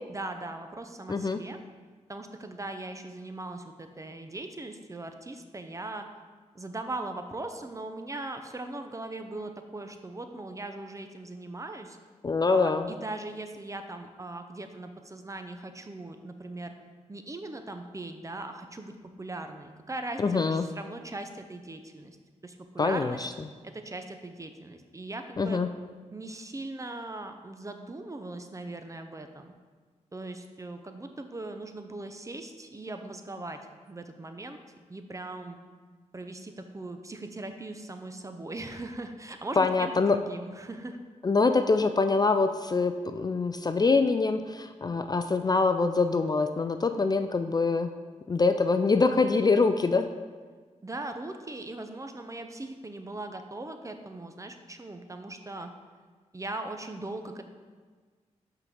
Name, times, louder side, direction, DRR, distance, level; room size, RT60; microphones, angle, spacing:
voice 1, 0.1-1.6 2.1-6.0 6.5-12.0 12.5-16.7 17.1-22.2 22.4-23.3 23.6-25.6 26.1-29.5 30.1-33.6 33.9-34.6 34.9-35.6 36.1-41.0 50.8-55.7 56.3-57.4, right 2 dB, 25° right, 7 dB, 0.6 m, -39 dB
voice 2, 1.1-1.4 12.2-12.9 20.2-20.7 22.8-23.3 25.4-25.7 39.6-40.2 41.2-47.9 48.3-50.1, left 4 dB, 30° left, 8 dB, 0.3 m, -24 dB
5.7 x 3.9 x 5.9 m, 1.5 s
cardioid pair, 60°, 13 cm